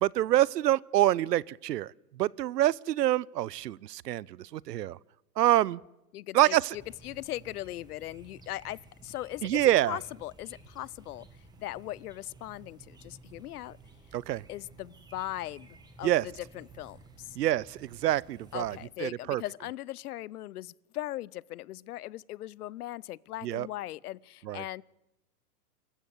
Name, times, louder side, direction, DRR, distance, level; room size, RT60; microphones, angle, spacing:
voice 1, 0.0-1.9 2.2-5.0 5.4-5.8 6.3-6.8 9.4-10.0 14.1-14.4 16.0-16.3 17.4-19.4 23.4-23.7 24.5-24.6, right 13 dB, 90° right, 0.7 m, -26 dB
voice 2, 6.1-11.3 11.6-13.8 14.5-15.7 16.0-17.4 18.5-24.8, left 15 dB, 70° left, 0.7 m, -39 dB
sound 1, 6.7-18.9, right 3 dB, 10° right, 1.7 m, -54 dB
25.0 x 14.5 x 7.9 m
hypercardioid pair, 150°, 47 cm